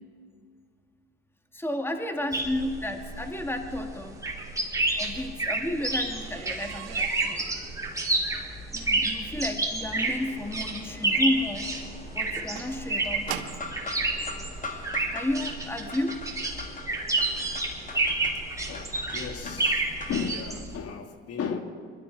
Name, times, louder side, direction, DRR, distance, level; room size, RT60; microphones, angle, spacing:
voice 1, 1.5-4.2 5.0-7.5 8.7-11.7 12.1-13.4 15.1-16.2, left 1 dB, 10° left, 4 dB, 1.9 m, -32 dB
sound 1, 2.3-20.8, right 2 dB, 10° right, 3.3 m, -30 dB
sound 2, 4.9-13.8 14.7-14.8 15.3-15.6 15.8-15.9 16.3-16.4, right 11 dB, 90° right, 1.0 m, -43 dB
sound 3, 9.9-20.4, left 3 dB, 25° left, 2.1 m, -43 dB
voice 2, 18.7-21.6, left 6 dB, 55° left, 5 dB, 1.7 m, -34 dB
22.5 x 13.0 x 4.6 m, 2.1 s
supercardioid pair, 75°, 29 cm